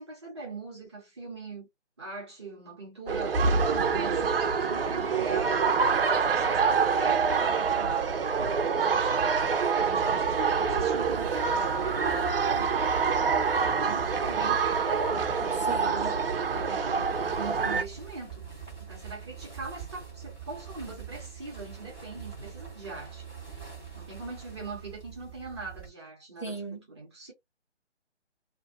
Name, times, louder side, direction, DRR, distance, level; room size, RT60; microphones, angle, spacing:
voice 1, 0.0-1.7 2.0-5.6 6.1-9.2 9.7-12.9 13.5-18.5 18.9-23.3 23.9-26.6 26.9-27.3, right 3 dB, 25° right, 0.8 m, -41 dB
sound 1, 3.1-17.8, right 5 dB, 55° right, 0.5 m, -26 dB
sound 2, 10.2-25.9, right 7 dB, 5° left, 1.2 m, -44 dB
voice 2, 15.6-16.2 26.4-26.9, right 3 dB, 25° left, 0.4 m, -37 dB
2.5 x 2.5 x 2.4 m
figure-of-eight pair, 150°, 35 cm